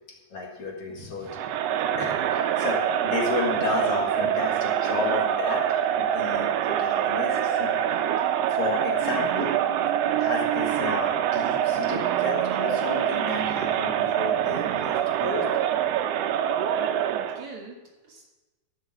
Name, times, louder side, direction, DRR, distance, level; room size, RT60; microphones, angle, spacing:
voice 1, 0.3-1.6 2.0-5.6 6.0-7.7 8.5-9.5 10.2-15.5, left 3 dB, 55° left, -1 dB, 2.5 m, -32 dB
voice 2, 0.9-1.3 17.1-18.2, right 3 dB, 55° right, 0 dB, 2.2 m, -44 dB
Crowd, 1.3-17.5, right 10 dB, 75° right, 1.6 m, -25 dB
11.5 x 6.5 x 7.5 m, 1.1 s
omnidirectional pair, 3.3 m